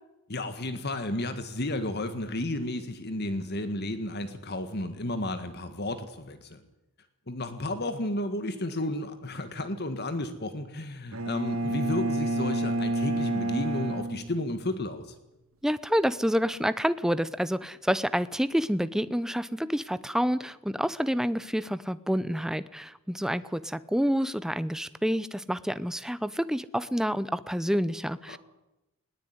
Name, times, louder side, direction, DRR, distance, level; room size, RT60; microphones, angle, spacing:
voice 1, 0.3-6.6 7.3-15.1 28.3-28.4, left 1 dB, 50° left, 9 dB, 1.8 m, -32 dB
Bowed string instrument, 11.1-15.0, right 1 dB, 75° right, 2.8 m, -30 dB
voice 2, 15.6-28.4, equal, ahead, 15 dB, 0.7 m, -28 dB
20.0 x 19.0 x 9.6 m, 0.93 s
head